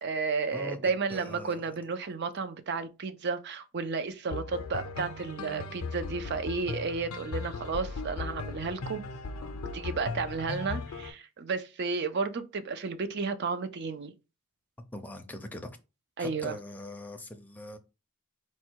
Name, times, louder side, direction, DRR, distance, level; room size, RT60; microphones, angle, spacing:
voice 1, 0.0-9.0 9.7-14.1 16.2-16.5, right 4 dB, 50° right, 0.5 m, -32 dB
voice 2, 1.1-1.6 14.9-15.7 16.2-17.8, left 1 dB, 10° left, 0.5 m, -41 dB
sound 1, 4.3-11.1, left 3 dB, 70° left, 0.5 m, -37 dB
4.4 x 2.2 x 4.5 m
head